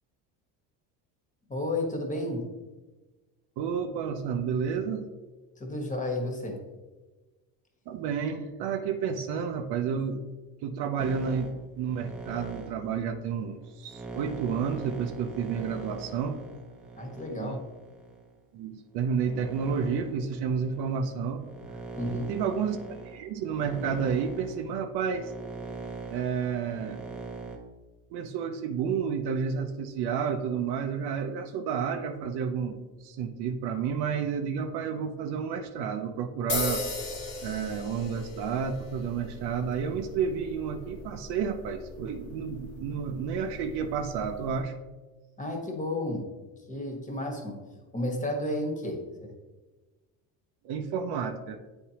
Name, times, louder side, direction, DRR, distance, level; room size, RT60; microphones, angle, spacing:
voice 1, 1.5-2.5 5.6-6.6 17.0-17.7 22.0-22.3 45.4-46.3 46.7-47.6 47.9-49.3, left 1 dB, 15° left, 2 dB, 1.4 m, -32 dB
voice 2, 3.6-5.1 7.9-10.2 10.6-16.4 17.3-17.6 18.5-21.4 22.0-22.8 23.1-25.3 26.1-27.0 28.1-36.8 37.4-44.7 50.6-51.6, right 6 dB, 60° right, 7 dB, 0.7 m, -31 dB
sound 1, 11.0-18.3 19.0-27.6, right 3 dB, ahead, 1.0 m, -42 dB
sound 2, 36.5-44.6, left 2 dB, 75° left, 1.5 m, -38 dB
8.4 x 4.4 x 2.9 m, 1.2 s
supercardioid pair, 95°, 45 cm